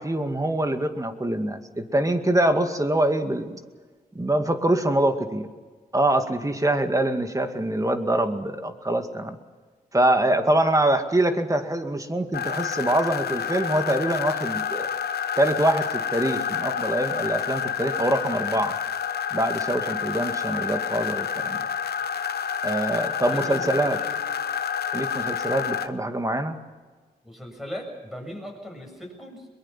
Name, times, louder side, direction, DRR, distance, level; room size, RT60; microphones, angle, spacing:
voice 1, 0.0-3.6 4.1-5.5 5.9-9.4 9.9-14.9 15.4-18.8 19.3-21.7 22.6-24.0 24.9-26.6, right 1 dB, 20° right, 7 dB, 2.2 m, -24 dB
sound 1, 12.3-25.9, left 7 dB, 85° left, 1.0 m, -29 dB
voice 2, 23.3-24.2 27.2-29.5, equal, ahead, 2 dB, 7.8 m, -38 dB
22.5 x 21.5 x 7.4 m, 1.4 s
cardioid pair, 50°, 16 cm